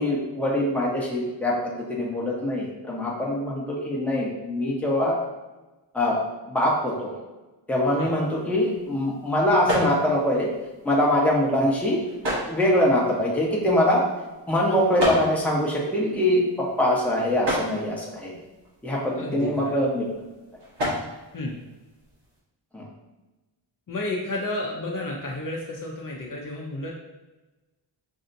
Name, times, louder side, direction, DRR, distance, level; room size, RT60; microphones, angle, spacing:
voice 1, 0.0-5.2 5.9-6.2 6.5-7.1 7.7-10.5 10.8-12.0 12.5-14.0 14.5-18.3 18.8-20.1 22.7-22.8, left 1 dB, 5° left, -4 dB, 0.8 m, -23 dB
sound 1, 8.0-22.4, equal, 65° right, 1.4 m, -35 dB
voice 2, 19.2-19.8 21.3-21.6 23.9-26.9, left 2 dB, 45° left, -2 dB, 0.6 m, -31 dB
5.4 x 2.7 x 2.6 m, 1.1 s
wide cardioid pair, 145°, 45 cm